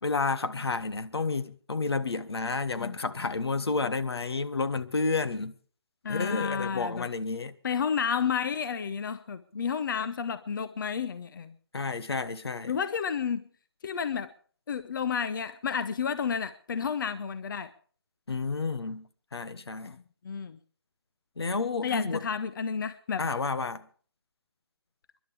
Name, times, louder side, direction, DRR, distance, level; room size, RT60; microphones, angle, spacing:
voice 1, 0.0-5.5 6.1-7.5 11.7-12.7 18.3-19.9 21.4-22.2 23.2-23.9, left 4 dB, 75° left, 1.3 m, -30 dB
voice 2, 6.0-7.1 7.6-11.5 12.7-13.4 13.8-14.3 14.7-17.7 19.8-19.9 20.2-20.6 21.8-23.2, left 6 dB, 55° left, 0.9 m, -31 dB
29.0 x 11.5 x 3.4 m
figure-of-eight pair, 150°, 13 cm